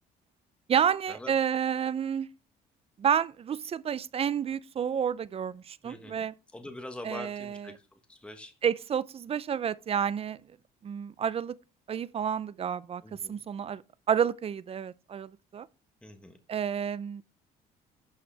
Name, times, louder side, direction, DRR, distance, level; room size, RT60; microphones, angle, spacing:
voice 1, 0.7-2.3 3.0-6.3 7.0-7.8 8.6-10.4 10.8-11.6 11.9-13.8 14.1-15.7 16.5-17.2, right 8 dB, 35° right, 0.5 m, -30 dB
voice 2, 5.8-6.2 6.5-7.7 8.1-8.5 13.0-13.4 16.0-16.3, left 1 dB, 5° left, 1.2 m, -43 dB
11.5 x 6.2 x 3.3 m
cardioid pair, 110°, 17 cm